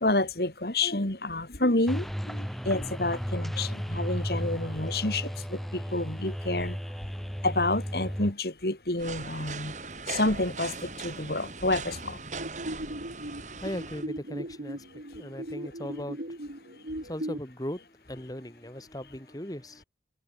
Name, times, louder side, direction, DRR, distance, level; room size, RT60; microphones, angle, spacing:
voice 1, 0.0-6.8 7.4-9.7 10.1-12.2, left 2 dB, 60° left, 3.0 m, -29 dB
sound 1, 1.9-8.3, equal, ahead, 2.0 m, -34 dB
sound 2, 9.0-14.1, right 4 dB, 45° right, 5.1 m, -39 dB
sound 3, 12.4-17.4, right 1 dB, 60° right, 3.2 m, -38 dB
voice 2, 13.6-16.2 17.0-19.8, equal, 20° left, 2.9 m, -38 dB
head